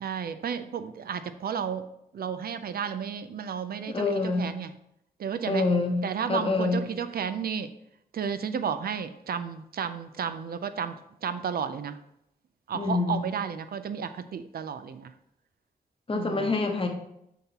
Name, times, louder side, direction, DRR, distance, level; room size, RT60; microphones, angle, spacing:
voice 1, 0.0-1.9 2.1-4.7 5.2-5.7 6.0-7.7 8.1-10.9 11.2-12.0 12.7-15.1 16.1-16.7, right 7 dB, 65° right, 10 dB, 0.4 m, -32 dB
voice 2, 3.9-4.5 5.5-6.9 12.7-13.2 16.1-16.9, left 3 dB, 35° left, 4 dB, 0.9 m, -26 dB
7.1 x 5.7 x 2.9 m, 0.79 s
wide cardioid pair, 110°, 17 cm